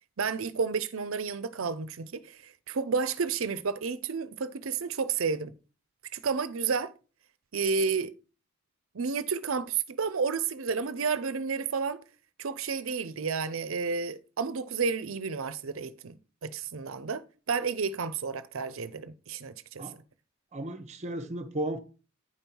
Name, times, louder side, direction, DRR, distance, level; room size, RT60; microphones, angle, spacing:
voice 1, 0.2-5.5 6.1-6.9 7.5-8.1 8.9-12.0 12.4-20.0, right 5 dB, 75° right, 0.6 m, -31 dB
voice 2, 20.5-21.8, right 1 dB, 35° right, 0.9 m, -34 dB
9.7 x 5.4 x 4.4 m
head